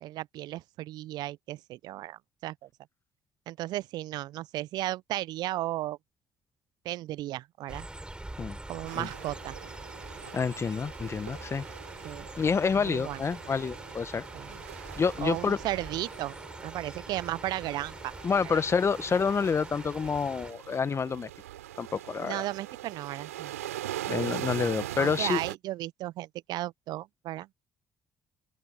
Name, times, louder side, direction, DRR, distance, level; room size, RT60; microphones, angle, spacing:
voice 1, 0.0-2.7 3.5-6.0 6.8-7.8 8.7-9.6 12.0-12.3 12.7-13.2 14.3-14.6 15.2-16.4 16.6-18.1 18.4-18.6 22.2-23.5 25.0-27.5, right 16 dB, 60° right, 0.6 m, -35 dB
sound 1, 7.7-20.5, right 1 dB, 10° right, 5.5 m, -44 dB
sound 2, 8.8-25.5, right 14 dB, 85° right, 3.6 m, -42 dB
voice 2, 10.3-11.6 12.4-14.2 15.0-15.6 18.2-21.3 21.8-22.4 24.1-25.4, left 5 dB, 35° left, 1.5 m, -28 dB
open air
hypercardioid pair, 50°, 8 cm